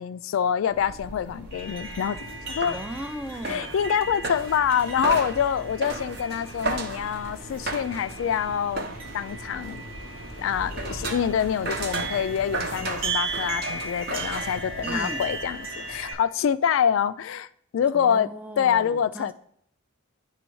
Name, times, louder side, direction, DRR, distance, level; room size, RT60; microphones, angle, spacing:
voice 1, 0.0-2.8 3.5-8.9 9.1-9.8 10.4-17.5 17.7-18.3 18.6-19.3, left 8 dB, 80° left, 0.3 m, -26 dB
sound 1, 0.7-15.5, right 3 dB, 50° right, 0.8 m, -36 dB
sound 2, 1.5-16.1, right 3 dB, 85° right, 1.4 m, -36 dB
voice 2, 2.7-3.8 14.8-15.2 17.9-19.3, right 1 dB, 5° right, 0.3 m, -37 dB
10.0 x 3.4 x 3.0 m
head